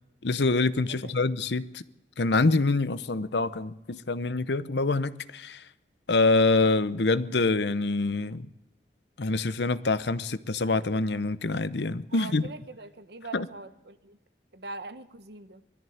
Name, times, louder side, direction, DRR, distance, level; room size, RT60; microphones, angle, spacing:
voice 1, 0.2-1.8 2.2-5.6 6.1-8.5 9.2-12.4 13.3-13.5, left 3 dB, 80° left, 0.8 m, -25 dB
voice 2, 0.9-1.2 12.1-14.2 14.5-15.6, right 3 dB, 70° right, 1.1 m, -43 dB
20.5 x 13.5 x 9.3 m
head